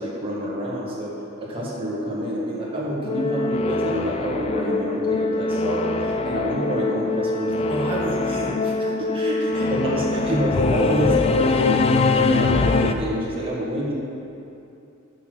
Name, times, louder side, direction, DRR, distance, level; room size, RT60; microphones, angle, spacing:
voice 1, 0.0-13.9, equal, 25° right, -5 dB, 1.8 m, -27 dB
Singing / Musical instrument, 3.0-12.9, left 3 dB, 30° left, 0.3 m, -23 dB
7.1 x 6.4 x 6.1 m, 2.8 s
head